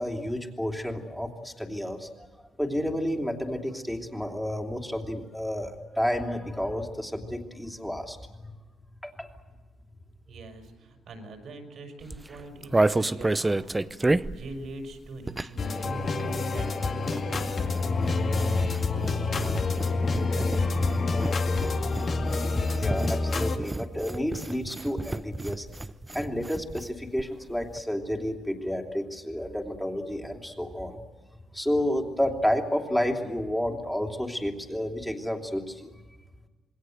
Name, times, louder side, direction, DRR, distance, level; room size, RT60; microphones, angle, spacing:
voice 1, 0.0-2.1 2.6-8.5 9.0-9.3 22.6-25.7 26.1-31.0 31.5-35.9, equal, 5° left, 3 dB, 3.1 m, -30 dB
voice 2, 10.3-21.1, right 2 dB, 65° right, 5 dB, 6.0 m, -43 dB
sound 1, 12.0-15.7 16.0-26.9 27.2-27.3 27.5-27.8, right 2 dB, 15° right, 0.7 m, -31 dB
sound 2, 15.6-23.6, left 3 dB, 45° left, 2.2 m, -27 dB
27.5 x 20.5 x 7.9 m, 1.3 s
cardioid pair, 90°, 0 cm